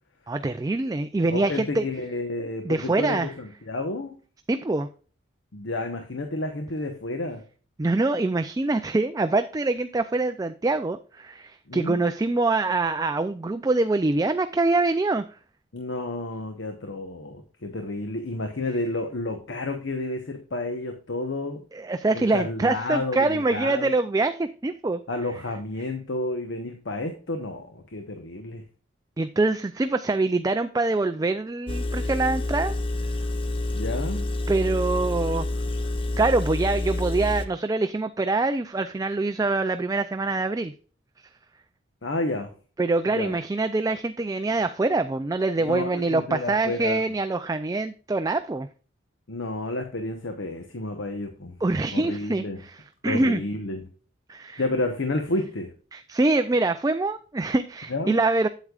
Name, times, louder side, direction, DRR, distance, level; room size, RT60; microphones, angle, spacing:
voice 1, 0.3-1.9 2.6-3.3 4.5-4.9 7.8-15.2 21.7-25.0 29.2-32.7 34.5-35.5 36.2-40.7 42.8-48.7 51.6-53.4 54.3-54.6 55.9-58.5, right 3 dB, 20° right, 9 dB, 0.3 m, -24 dB
voice 2, 1.3-4.1 5.5-7.4 11.7-12.0 15.7-21.6 22.1-23.9 25.1-28.6 33.7-34.3 42.0-42.5 43.1-43.4 45.6-47.0 49.3-51.6 51.9-52.6 53.0-53.8 54.6-55.7 57.9-58.2, left 2 dB, 75° left, 5 dB, 1.0 m, -31 dB
Engine, 31.7-37.5, left 2 dB, 25° left, 0.6 m, -28 dB
8.6 x 8.1 x 2.4 m, 0.39 s
head